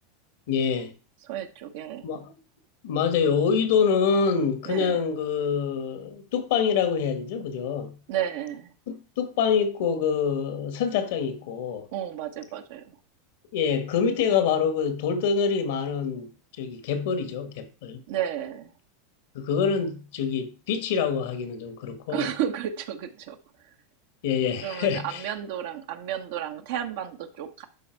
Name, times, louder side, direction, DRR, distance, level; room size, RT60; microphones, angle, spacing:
voice 1, 0.5-0.9 2.0-2.4 2.8-8.0 8.9-11.8 13.5-16.3 16.6-18.0 19.3-22.3 24.2-25.2, left 6 dB, 70° left, 1.6 m, -26 dB
voice 2, 1.2-2.1 4.7-5.0 8.1-8.7 11.9-13.0 18.1-18.7 22.1-23.4 24.6-27.7, right 10 dB, 65° right, 1.1 m, -32 dB
11.5 x 4.3 x 4.6 m
hypercardioid pair, 95°, 0 cm